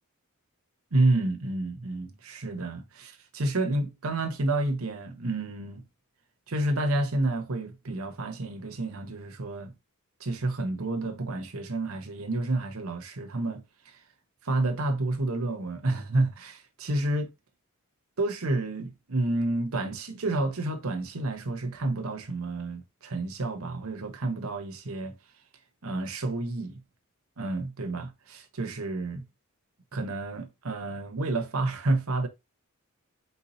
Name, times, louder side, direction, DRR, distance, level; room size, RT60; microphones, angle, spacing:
voice 1, 0.9-5.8 6.5-9.7 10.2-14.0 14.4-17.3 18.2-25.1 25.8-26.8 27.4-29.2 29.9-32.3, right 2 dB, 70° right, 1.0 m, -30 dB
4.5 x 4.1 x 2.8 m
head